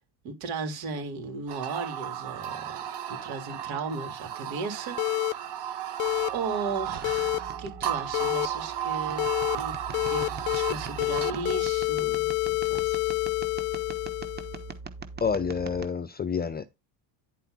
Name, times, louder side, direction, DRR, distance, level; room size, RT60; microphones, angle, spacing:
voice 1, 0.2-2.6 3.1-5.5 6.3-13.0, right 4 dB, 70° right, 3.8 m, -36 dB
sound 1, 1.5-11.6, right 11 dB, 55° right, 2.0 m, -34 dB
sound 2, 5.0-5.3 6.0-6.3 7.0-7.4 8.1-8.5 9.2-9.6 9.9-10.7 11.0-14.7, left 27 dB, 90° left, 0.6 m, -28 dB
sound 3, 6.0-15.9, right 4 dB, 20° right, 1.1 m, -42 dB
voice 2, 15.2-16.8, left 6 dB, 20° left, 0.5 m, -29 dB
10.5 x 4.4 x 4.0 m
cardioid pair, 130°, 48 cm